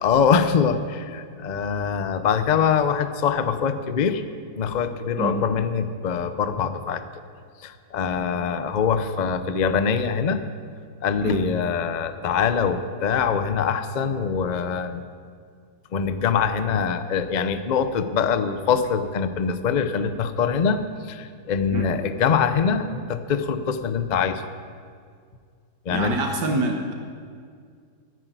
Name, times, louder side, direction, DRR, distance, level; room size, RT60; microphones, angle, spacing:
voice 1, 0.0-4.2 4.6-7.0 7.6-10.4 11.0-15.0 15.9-24.4 25.9-26.1, left 6 dB, 90° left, 10 dB, 0.4 m, -23 dB
voice 2, 25.9-26.9, right 3 dB, 85° right, 2 dB, 1.9 m, -26 dB
10.0 x 9.5 x 9.3 m, 2.1 s
omnidirectional pair, 1.8 m